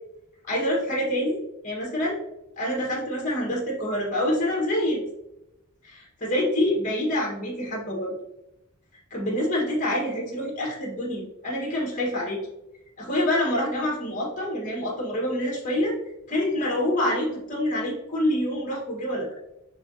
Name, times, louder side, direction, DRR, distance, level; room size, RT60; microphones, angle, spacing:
voice 1, 0.5-2.2 2.6-5.0 6.2-8.1 9.1-12.5 13.0-15.9 16.3-19.3, left 1 dB, 35° left, -3 dB, 1.4 m, -26 dB
5.5 x 3.6 x 2.7 m, 0.89 s
head